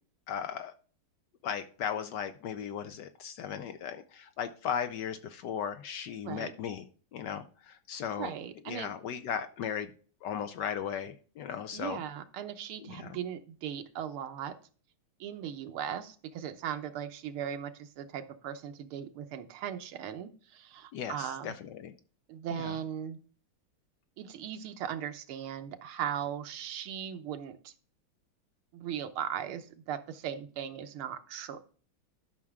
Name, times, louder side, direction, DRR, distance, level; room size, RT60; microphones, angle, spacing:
voice 1, 0.3-0.7 1.4-6.8 7.1-8.3 8.7-9.9 10.2-12.0 12.8-13.2 20.9-21.9 22.5-22.8, left 8 dB, 70° left, 10 dB, 1.1 m, -37 dB
voice 2, 8.2-8.9 11.7-14.5 15.2-21.5 22.3-23.2 24.2-27.7 28.7-31.6, right 9 dB, 90° right, 9 dB, 1.8 m, -38 dB
12.0 x 5.8 x 3.6 m, 0.41 s
omnidirectional pair, 2.3 m